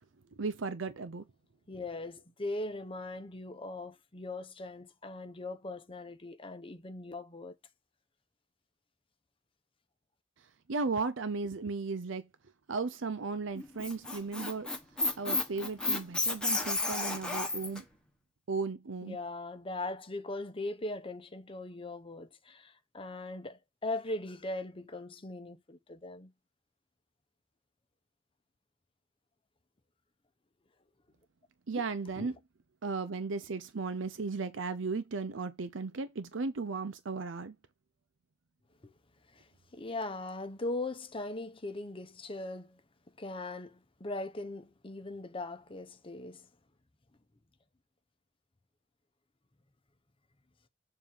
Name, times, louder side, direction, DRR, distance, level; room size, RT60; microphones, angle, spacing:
voice 1, 0.4-1.2 10.7-12.3 12.7-14.7 15.2-17.8 18.5-19.2 31.7-32.4 32.8-37.6, right 4 dB, 80° right, 0.6 m, -35 dB
voice 2, 1.7-7.5 19.0-26.3 32.2-32.3 38.8-38.9 39.3-42.8 43.2-46.5, left 2 dB, 30° left, 0.8 m, -40 dB
Squeak, 13.6-17.8, left 2 dB, 5° left, 1.4 m, -32 dB
7.3 x 2.8 x 5.5 m
head